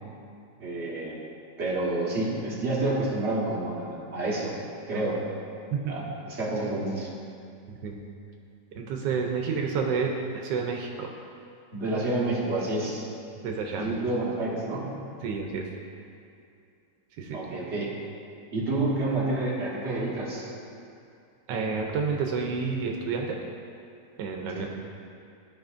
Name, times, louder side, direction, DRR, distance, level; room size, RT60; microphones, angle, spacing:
voice 1, 0.6-1.2 1.6-4.5 4.9-5.2 5.9-7.1 11.7-13.0 13.8-15.0 17.3-17.9 18.5-20.5 24.6-24.7, right 2 dB, 40° right, -6 dB, 1.6 m, -29 dB
voice 2, 5.7-6.1 7.7-8.0 8.7-11.1 13.4-13.9 15.2-15.7 17.2-17.4 21.5-23.4 24.2-24.7, right 5 dB, 85° right, 1 dB, 1.3 m, -30 dB
13.0 x 4.9 x 2.5 m, 2.5 s
omnidirectional pair, 1.9 m